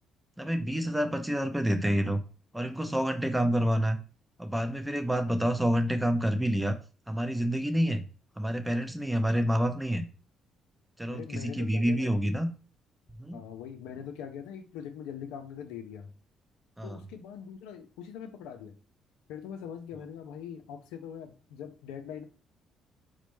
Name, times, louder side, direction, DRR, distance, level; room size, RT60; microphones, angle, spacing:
voice 1, 0.4-2.2 2.5-4.0 4.4-6.8 7.1-8.0 8.4-10.1 11.0-12.5 13.2-13.4 16.8-17.0, equal, 10° right, 8 dB, 0.6 m, -28 dB
voice 2, 11.1-12.1 13.3-16.1 16.8-18.7 19.3-22.2, left 8 dB, 85° left, 6 dB, 0.4 m, -42 dB
4.1 x 2.1 x 3.0 m, 0.36 s
supercardioid pair, 60°, 0 cm